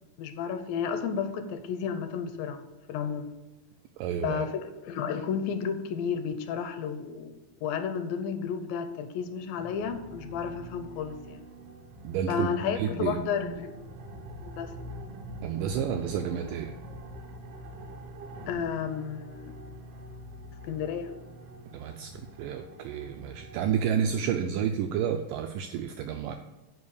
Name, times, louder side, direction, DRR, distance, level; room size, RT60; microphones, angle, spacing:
voice 1, 0.2-3.3 4.2-11.4 12.3-13.8 14.4-14.7 18.5-19.5 20.6-21.1, left 7 dB, 80° left, 9 dB, 2.3 m, -32 dB
voice 2, 4.0-4.4 12.0-13.2 15.4-16.7 21.7-26.4, right 8 dB, 85° right, 6 dB, 1.9 m, -30 dB
sound 1, 9.6-24.2, equal, 70° right, 2.1 m, -45 dB
9.6 x 5.1 x 6.8 m, 1.1 s
omnidirectional pair, 4.4 m